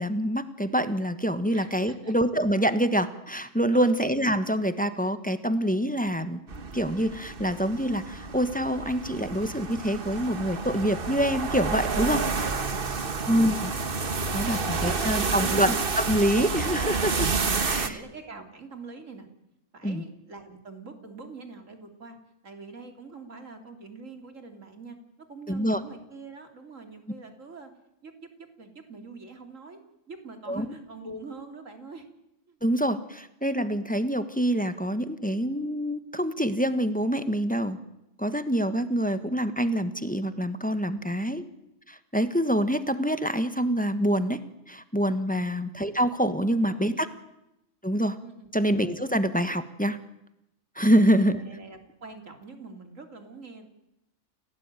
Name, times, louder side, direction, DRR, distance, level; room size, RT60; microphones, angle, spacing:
voice 1, 0.0-6.4 6.7-12.3 13.3-13.7 14.3-17.3 17.6-17.9 19.8-20.0 25.5-25.8 30.5-30.6 32.6-37.8 38.2-41.4 41.9-44.4 44.7-47.1 47.8-48.2 48.5-50.0 50.8-51.4, equal, 5° left, 11 dB, 1.3 m, -26 dB
voice 2, 1.5-2.2 3.7-4.0 17.7-19.3 19.7-22.2 22.4-25.0 25.3-27.7 28.0-29.8 30.1-32.1 32.5-32.6 40.9-41.3 45.3-45.6 46.7-47.1 48.2-48.5 51.3-53.7, right 4 dB, 70° right, 6 dB, 3.5 m, -45 dB
sound 1, 6.5-17.9, right 4 dB, 45° right, 1.5 m, -30 dB
29.0 x 17.5 x 9.1 m, 0.89 s
omnidirectional pair, 1.4 m